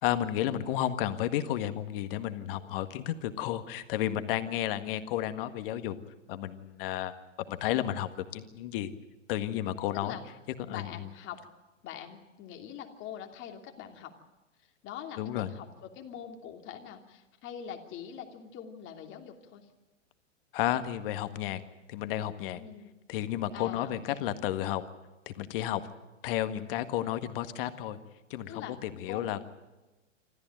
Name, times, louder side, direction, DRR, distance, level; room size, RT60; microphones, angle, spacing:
voice 1, 0.0-6.0 6.3-7.2 7.5-8.9 9.3-10.2 10.7-10.9 15.2-15.5 20.5-21.6 21.9-22.6 23.1-24.8 25.3-25.8 26.2-28.0 28.3-29.4, left 12 dB, 45° left, 10 dB, 1.8 m, -32 dB
voice 2, 10.7-11.4 11.8-14.1 14.8-19.7 22.5-22.9 23.5-24.2 28.5-28.7 29.1-29.3, left 9 dB, 30° left, 4 dB, 2.9 m, -43 dB
26.5 x 14.0 x 9.1 m, 1.1 s
hypercardioid pair, 115°, 37 cm